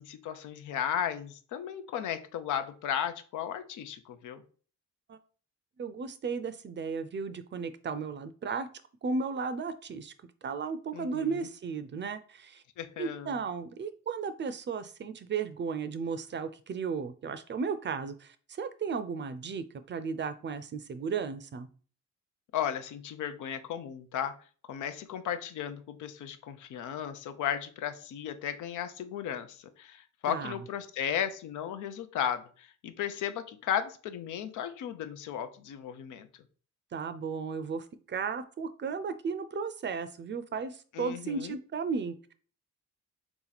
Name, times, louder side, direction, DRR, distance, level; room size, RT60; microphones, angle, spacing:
voice 1, 0.0-4.4 10.9-11.4 12.8-13.3 22.5-24.3 24.7-36.3 40.9-41.6, left 9 dB, 80° left, 10 dB, 0.7 m, -35 dB
voice 2, 5.8-8.7 9.0-10.1 10.4-12.6 13.0-21.7 30.3-30.6 36.9-42.1, right 5 dB, 40° right, 11 dB, 0.5 m, -35 dB
3.6 x 3.0 x 4.0 m, 0.41 s
cardioid pair, 90°, 30 cm